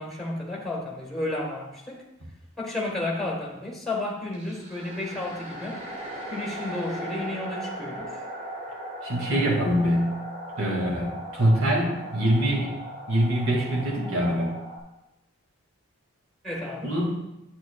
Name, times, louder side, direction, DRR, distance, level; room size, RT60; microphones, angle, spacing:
voice 1, 0.0-2.0 2.6-5.8 6.3-8.2 16.4-16.9, left 2 dB, ahead, -2 dB, 1.3 m, -32 dB
sound 1, 4.3-14.8, equal, 35° right, 1.4 m, -38 dB
voice 2, 9.0-10.2 10.6-12.7 13.1-14.5 16.8-17.2, right 1 dB, 85° right, -1 dB, 2.4 m, -24 dB
9.4 x 7.8 x 2.4 m, 0.92 s
head